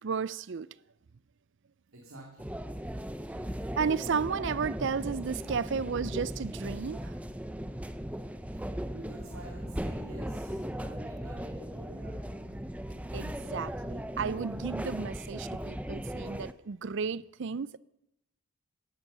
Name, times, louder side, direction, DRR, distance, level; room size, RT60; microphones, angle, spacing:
voice 1, 0.0-0.7 3.4-7.2 12.9-17.8, right 5 dB, 55° right, 0.4 m, -33 dB
voice 2, 1.9-2.5 8.5-12.6, right 1 dB, 75° right, 2.5 m, -49 dB
sound 1, 2.4-16.5, equal, 5° right, 0.5 m, -38 dB
17.0 x 11.0 x 6.8 m
head